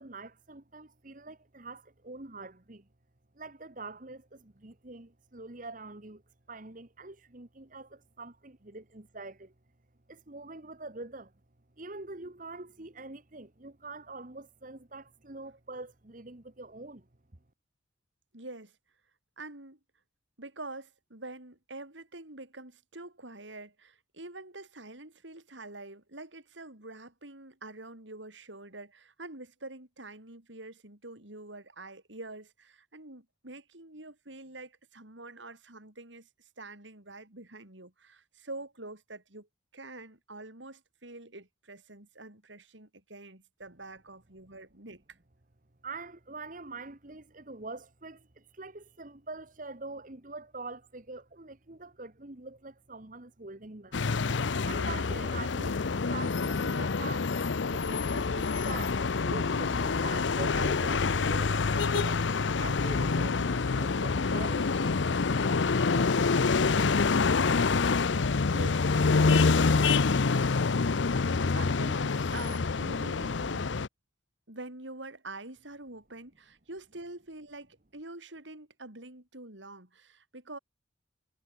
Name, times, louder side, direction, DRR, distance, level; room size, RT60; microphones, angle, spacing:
voice 1, 0.0-2.8 3.4-6.2 6.5-9.5 10.1-11.3 11.8-17.0 45.8-54.0 54.6-57.3 57.7-62.2 62.6-66.9, right 3 dB, 45° right, 1.6 m, -44 dB
voice 2, 18.3-18.8 19.4-19.8 20.4-39.5 39.7-45.0 68.5-68.9 69.3-70.0 71.4-73.7 74.5-80.6, right 2 dB, 80° right, 5.6 m, -46 dB
sound 1, 53.9-73.9, left 4 dB, 75° left, 0.7 m, -27 dB
head